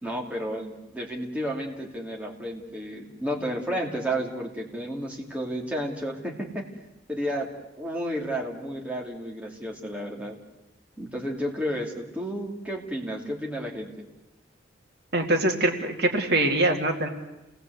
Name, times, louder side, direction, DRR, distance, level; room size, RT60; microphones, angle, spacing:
voice 1, 0.0-6.7 7.1-7.5 7.8-10.3 11.0-13.9, equal, 5° right, -1 dB, 2.8 m, -32 dB
voice 2, 15.1-17.1, right 2 dB, 55° right, 4 dB, 2.3 m, -23 dB
29.0 x 18.5 x 8.1 m, 1.0 s
head